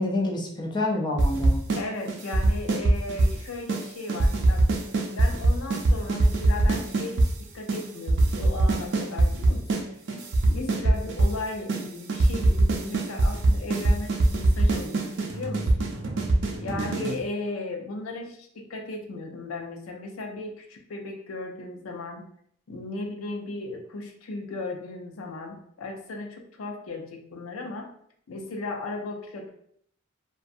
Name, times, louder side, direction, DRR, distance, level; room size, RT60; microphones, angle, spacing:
voice 1, 0.0-1.6 16.7-17.1, left 2 dB, 20° left, -1 dB, 0.4 m, -28 dB
sound 1, 1.2-3.4 3.7-3.8 4.1-7.3 7.7-7.8 8.1-9.8 10.1-11.4 11.7-11.8 12.1-17.2, right 2 dB, 60° right, 0.4 m, -22 dB
voice 2, 1.8-4.7 5.0-16.0 16.6-22.3 22.7-27.9 28.3-29.5, left 2 dB, 90° left, 3 dB, 0.5 m, -36 dB
2.4 x 2.3 x 2.6 m, 0.66 s
head